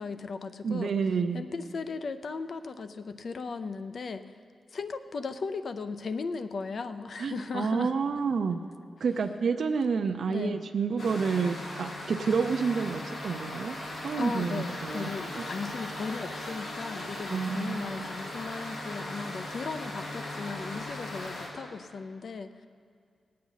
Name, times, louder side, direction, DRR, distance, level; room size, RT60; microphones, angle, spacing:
voice 1, 0.0-0.9 1.3-4.3 4.7-7.9 10.3-10.6 14.2-22.7, left 4 dB, 55° left, 10 dB, 0.5 m, -37 dB
voice 2, 0.6-1.4 7.2-8.6 9.0-13.8 14.0-15.1 15.4-15.5 17.3-18.0, right 5 dB, 65° right, 6 dB, 0.5 m, -29 dB
sound 1, 11.0-21.5, left 1 dB, 80° left, 2.6 m, -38 dB
19.0 x 8.5 x 4.0 m, 2.2 s
wide cardioid pair, 155°, 0 cm